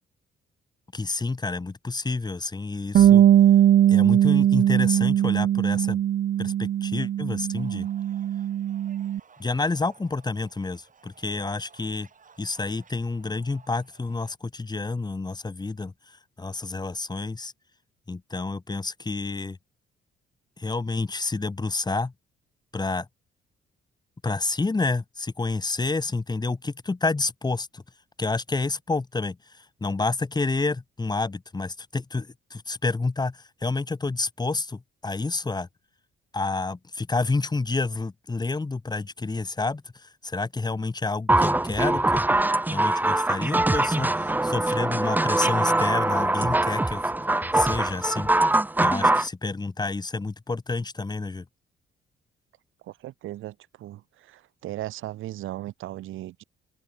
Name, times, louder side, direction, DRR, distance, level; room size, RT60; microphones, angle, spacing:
voice 1, 0.9-3.2 3.9-6.0 6.4-7.9 9.4-12.1 12.4-17.5 18.1-19.6 20.6-22.1 22.7-23.1 24.2-27.8 28.2-35.7 36.3-42.3 42.7-47.1 47.5-48.3 48.8-51.4, left 3 dB, 20° left, 1.7 m, -29 dB
Bass guitar, 2.9-9.2, right 11 dB, 60° right, 0.8 m, -20 dB
sound 1, 6.6-14.3, right 6 dB, 40° right, 6.3 m, -56 dB
sound 2, 41.3-49.3, right 2 dB, 10° right, 0.8 m, -23 dB
voice 2, 52.8-56.4, right 14 dB, 85° right, 3.6 m, -37 dB
open air
cardioid pair, 90°, 20 cm